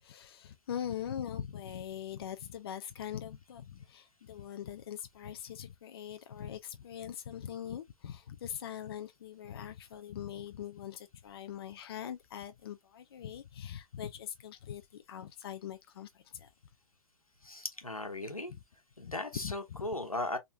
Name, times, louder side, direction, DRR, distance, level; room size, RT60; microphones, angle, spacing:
voice 1, 0.0-16.5 19.0-19.1 19.4-19.9, left 9 dB, 45° left, 0.5 m, -42 dB
voice 2, 17.4-18.5 19.0-20.4, left 2 dB, 85° left, 1.3 m, -37 dB
4.4 x 3.6 x 2.3 m
figure-of-eight pair, 120°, 18 cm